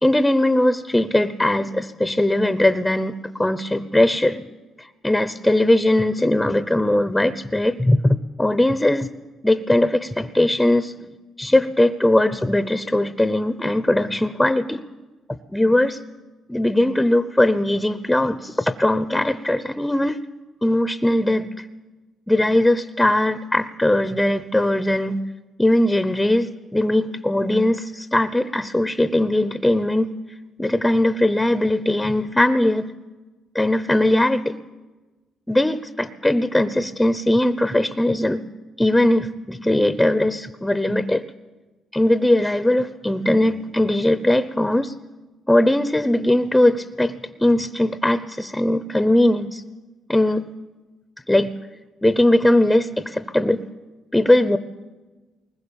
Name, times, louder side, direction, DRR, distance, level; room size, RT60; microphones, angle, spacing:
voice 1, 0.0-4.5 4.8-9.1 9.4-11.1 11.4-14.8 15.3-16.0 16.5-20.2 20.6-21.7 22.3-25.2 25.6-30.1 30.6-32.9 33.5-34.6 35.5-38.4 38.8-41.2 41.9-44.9 45.5-49.6 50.1-50.5 51.3-51.5 52.0-53.6 54.1-54.6, left 1 dB, 10° left, 12 dB, 0.8 m, -20 dB
20.5 x 20.0 x 7.1 m, 1.2 s
cardioid pair, 90°, 0 cm